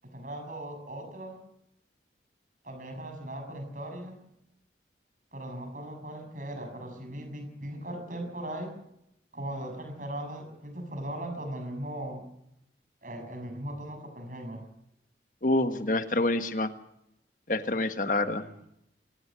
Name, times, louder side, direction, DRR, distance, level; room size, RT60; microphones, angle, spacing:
voice 1, 0.0-1.4 2.6-4.2 5.3-8.8 9.3-12.2 13.0-14.6 18.0-18.7, right 1 dB, 45° right, 6 dB, 6.5 m, -39 dB
voice 2, 15.4-16.7 17.5-18.4, left 2 dB, 50° left, 9 dB, 1.5 m, -27 dB
24.5 x 18.5 x 6.2 m, 0.79 s
head